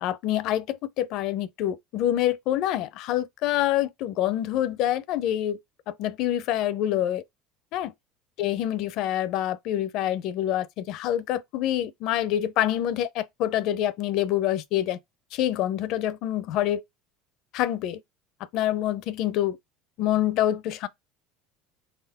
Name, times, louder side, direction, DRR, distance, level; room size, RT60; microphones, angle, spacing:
voice 1, 0.0-5.6 5.9-7.2 7.7-7.9 8.4-15.0 15.3-16.8 17.5-18.0 18.5-19.6 20.0-20.9, left 12 dB, 65° left, 0.6 m, -26 dB
3.8 x 3.6 x 3.6 m
supercardioid pair, 90°, 0 cm